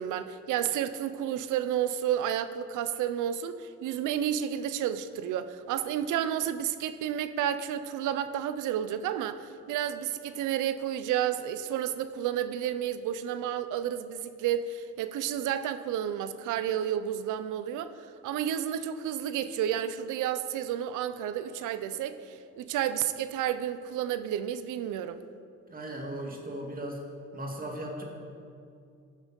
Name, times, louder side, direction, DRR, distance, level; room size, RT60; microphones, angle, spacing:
voice 1, 0.0-17.9 18.2-25.2, right 10 dB, 90° right, 12 dB, 0.6 m, -31 dB
voice 2, 25.7-27.0 27.3-28.0, right 1 dB, 30° right, 1 dB, 2.1 m, -37 dB
15.0 x 6.1 x 5.2 m, 2.5 s
cardioid pair, 90°, 30 cm